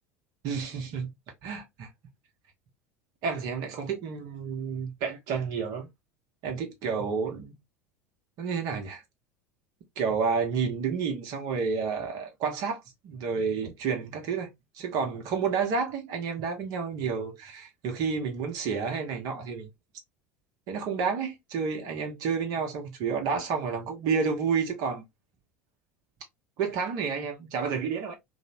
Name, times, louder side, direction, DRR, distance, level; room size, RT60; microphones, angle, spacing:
voice 1, 0.4-1.1 1.4-1.9 3.2-5.9 6.4-7.6 8.4-9.0 10.0-19.7 20.7-25.0 26.6-28.2, right 5 dB, 55° right, 0.9 m, -30 dB
3.0 x 2.1 x 2.7 m
figure-of-eight pair, 75°, 8 cm